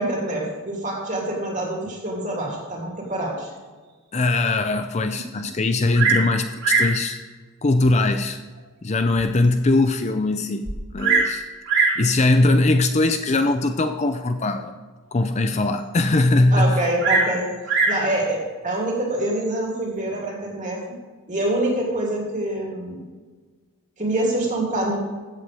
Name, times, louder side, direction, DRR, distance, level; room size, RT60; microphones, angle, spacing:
voice 1, 0.0-3.5 16.5-17.4 17.9-20.8 21.3-23.0 24.0-25.0, right 1 dB, 35° right, -2 dB, 2.8 m, -25 dB
voice 2, 4.1-7.2 7.6-8.4 8.8-10.7 10.9-11.4 11.7-14.8 15.1-16.8, left 2 dB, 30° left, 8 dB, 0.5 m, -20 dB
Bird vocalization bird call bird song, 5.9-6.3 6.6-7.0 7.8-7.9 8.6-8.7 9.2-9.3 9.5-9.6 10.6-11.3 11.7-12.0 13.0-13.4 17.0-18.0 19.1-19.5, right 4 dB, 60° right, 3.3 m, -21 dB
15.0 x 8.2 x 3.5 m, 1.4 s
head